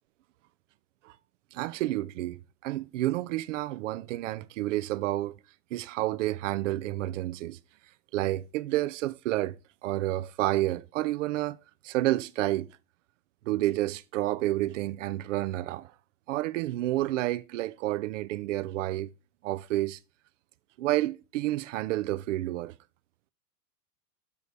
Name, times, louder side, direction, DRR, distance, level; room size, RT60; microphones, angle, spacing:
voice 1, 1.5-5.4 5.7-7.6 8.1-9.6 9.8-11.6 11.8-12.7 13.5-15.9 16.3-19.1 19.4-20.0 20.8-22.7, right 16 dB, 55° right, 0.5 m, -30 dB
6.9 x 6.7 x 3.2 m
hypercardioid pair, 105°, 48 cm